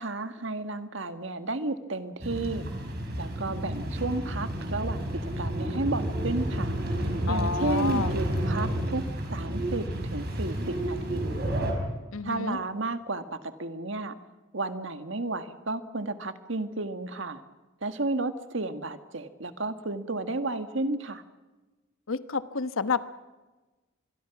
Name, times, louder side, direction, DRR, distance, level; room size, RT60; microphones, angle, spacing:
voice 1, 0.0-2.7 3.2-6.7 7.3-9.0 9.3-11.5 12.2-14.1 14.5-17.4 17.8-21.2, right 2 dB, 65° right, 9 dB, 1.7 m, -32 dB
sound 1, 2.2-11.7, right 1 dB, 50° right, 5.6 m, -30 dB
voice 2, 7.3-8.1 12.1-12.6 22.1-23.1, left 4 dB, 85° left, 12 dB, 1.1 m, -30 dB
26.0 x 22.0 x 6.0 m, 1.2 s
head